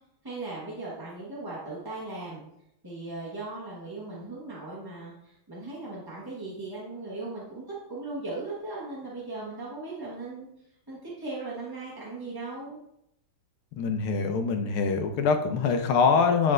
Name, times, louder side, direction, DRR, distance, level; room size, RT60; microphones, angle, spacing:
voice 1, 0.2-2.4 2.8-7.6 7.9-10.5 10.9-12.8, right 2 dB, 15° right, -7 dB, 0.8 m, -38 dB
voice 2, 13.8-16.5, left 5 dB, 80° left, 6 dB, 1.6 m, -24 dB
9.4 x 4.5 x 2.5 m, 0.80 s
omnidirectional pair, 2.4 m